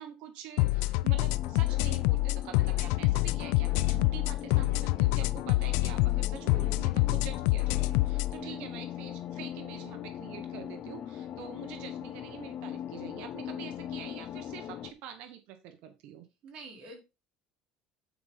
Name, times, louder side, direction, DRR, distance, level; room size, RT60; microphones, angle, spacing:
voice 1, 0.0-16.3, right 9 dB, 75° right, 8 dB, 1.2 m, -46 dB
sound 1, 0.6-8.3, left 20 dB, 90° left, 0.4 m, -27 dB
sound 2, 1.1-14.9, left 10 dB, 50° left, 0.8 m, -41 dB
voice 2, 8.4-8.7 16.4-17.0, right 3 dB, 50° right, -1 dB, 4.7 m, -47 dB
9.6 x 5.0 x 4.1 m, 0.27 s
cardioid pair, 120°, 2 cm